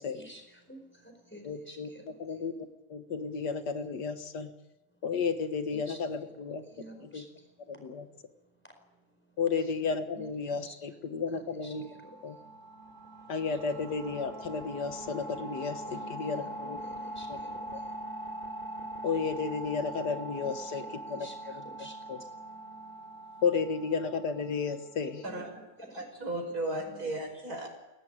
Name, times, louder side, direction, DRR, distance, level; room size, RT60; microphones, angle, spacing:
voice 1, 0.0-2.5 5.7-6.0 6.6-7.8 8.6-8.7 10.1-10.8 11.3-12.3 15.8-17.9 18.7-18.8 20.4-22.0 22.5-22.9 25.2-26.2 26.8-27.1, equal, 5° left, 3 dB, 4.6 m, -51 dB
voice 2, 1.4-1.9 2.2-2.5 2.9-4.5 5.0-6.6 7.1-7.2 7.7-8.1 9.4-11.9 12.2-12.4 13.3-15.8 16.1-16.8 17.3-17.4 19.0-20.8 21.1-21.6 22.1-22.2 23.4-25.2, left 5 dB, 85° left, 8 dB, 2.0 m, -32 dB
sound 1, 11.7-25.2, right 1 dB, 30° right, 2.8 m, -42 dB
voice 3, 25.9-27.7, right 2 dB, 65° right, 2 dB, 6.5 m, -35 dB
23.5 x 17.0 x 9.0 m, 1.0 s
omnidirectional pair, 1.7 m